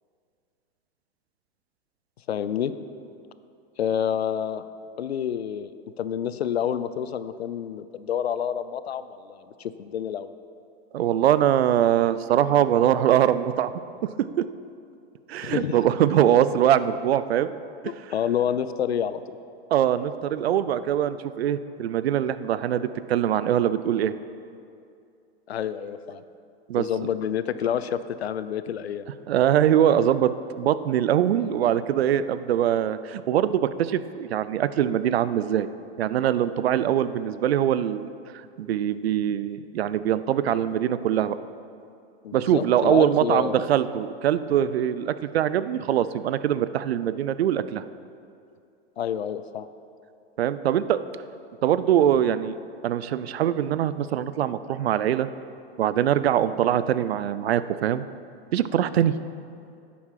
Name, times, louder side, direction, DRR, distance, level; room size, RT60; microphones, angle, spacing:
voice 1, 2.3-2.7 3.8-4.6 5.0-5.7 6.0-10.3 15.4-15.8 17.8-19.2 25.5-26.2 26.8-29.0 42.2-43.7 49.0-49.7, left 9 dB, 90° left, 13 dB, 0.6 m, -28 dB
voice 2, 10.9-13.7 14.4-14.5 15.3-17.5 19.7-24.1 26.7-26.9 29.3-30.3 30.6-35.7 36.0-38.1 38.6-41.4 42.3-47.8 50.4-51.0 51.6-52.6 52.8-55.3 55.8-58.0 58.5-59.1, right 10 dB, 80° right, 14 dB, 0.6 m, -22 dB
10.5 x 8.6 x 5.8 m, 2.4 s
hypercardioid pair, 100°, 31 cm